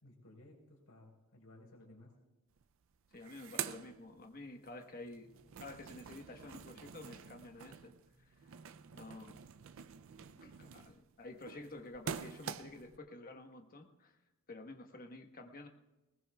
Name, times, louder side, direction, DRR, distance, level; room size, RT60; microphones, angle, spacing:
voice 1, 0.0-2.1, left 1 dB, 85° left, -1 dB, 4.3 m, -58 dB
sound 1, 2.6-2.7 2.9-4.7 5.1-13.0, right 8 dB, 60° right, 0.4 m, -47 dB
voice 2, 3.1-5.3 5.6-7.9 8.3-8.5 8.9-9.4 10.4-14.2 14.5-15.7, left 2 dB, 40° left, 4 dB, 1.2 m, -50 dB
sound 2, 4.1-6.1 7.8-9.8 11.6-13.5, right 2 dB, 5° right, 1.6 m, -68 dB
20.0 x 19.5 x 2.3 m, 1.1 s
head